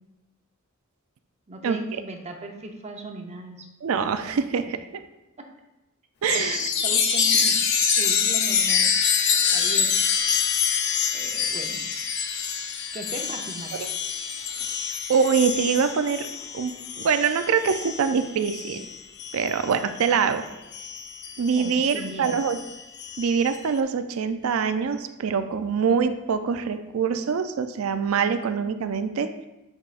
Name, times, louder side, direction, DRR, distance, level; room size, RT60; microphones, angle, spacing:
voice 1, 1.5-3.7 5.4-5.5 6.3-6.5 6.8-10.0 10.3-10.5 11.1-11.9 12.9-13.8 21.5-22.4, right 2 dB, 30° right, 3 dB, 0.7 m, -38 dB
voice 2, 3.8-4.8 6.2-6.7 13.7-13.9 14.6-16.3 16.5-18.9 19.3-20.5 21.4-22.6 23.2-29.3, right 6 dB, 80° right, 9 dB, 0.4 m, -24 dB
Chime, 6.3-20.3 20.7-23.5, left 6 dB, 55° left, 0.6 m, -26 dB
8.1 x 4.8 x 2.5 m, 1.0 s
head